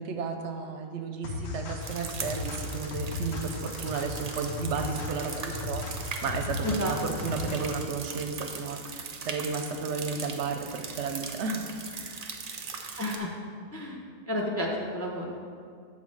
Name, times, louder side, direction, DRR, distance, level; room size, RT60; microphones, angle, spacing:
voice 1, 0.0-12.2, right 5 dB, 65° right, 5 dB, 0.8 m, -33 dB
sound 1, 1.2-7.8, left 3 dB, 75° left, 1.1 m, -36 dB
sound 2, 1.8-13.2, right 5 dB, 50° right, 0.4 m, -40 dB
voice 2, 6.6-7.0 13.0-13.3 13.7-14.0 14.3-15.4, left 1 dB, 15° left, 0 dB, 0.5 m, -31 dB
7.3 x 4.0 x 6.3 m, 2.1 s
omnidirectional pair, 1.3 m